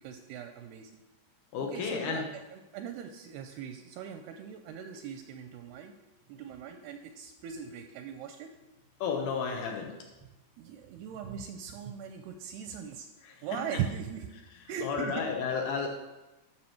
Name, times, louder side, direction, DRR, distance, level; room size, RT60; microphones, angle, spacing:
voice 1, 0.0-0.9 1.7-5.9 6.3-8.5 10.6-13.1 13.4-14.3 14.7-15.2, right 8 dB, 85° right, 6 dB, 2.3 m, -39 dB
voice 2, 1.5-2.2 9.0-9.9 13.2-13.6 14.8-15.9, left 5 dB, 70° left, 1 dB, 2.5 m, -32 dB
12.0 x 6.1 x 4.5 m, 1.1 s
omnidirectional pair, 5.0 m